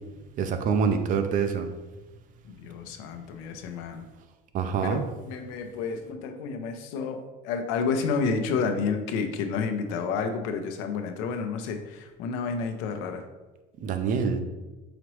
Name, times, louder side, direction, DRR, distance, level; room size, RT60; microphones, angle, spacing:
voice 1, 0.4-1.7 4.5-5.0 13.8-14.4, right 6 dB, 40° right, 8 dB, 0.4 m, -25 dB
voice 2, 2.4-4.0 4.8-13.2, left 5 dB, 85° left, 6 dB, 0.6 m, -30 dB
5.0 x 3.0 x 3.0 m, 1.1 s
cardioid pair, 140°, 20 cm